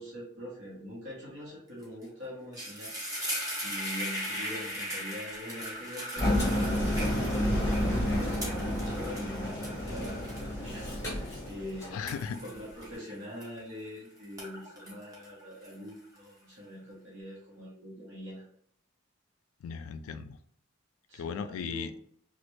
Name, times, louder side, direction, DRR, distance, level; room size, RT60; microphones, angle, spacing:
voice 1, 0.0-2.9 3.6-10.2 10.6-12.0 12.4-18.4 21.1-21.9, equal, 65° right, -7 dB, 1.1 m, -43 dB
sound 1, 1.8-2.0 2.3-13.9 14.2-16.2, equal, 15° right, 0.9 m, -39 dB
Engine, 6.2-12.0, left 1 dB, 15° left, 0.9 m, -30 dB
voice 2, 11.9-12.4 19.6-20.4 21.2-22.0, left 6 dB, 85° left, 10 dB, 0.3 m, -37 dB
3.2 x 2.4 x 3.0 m, 0.67 s
head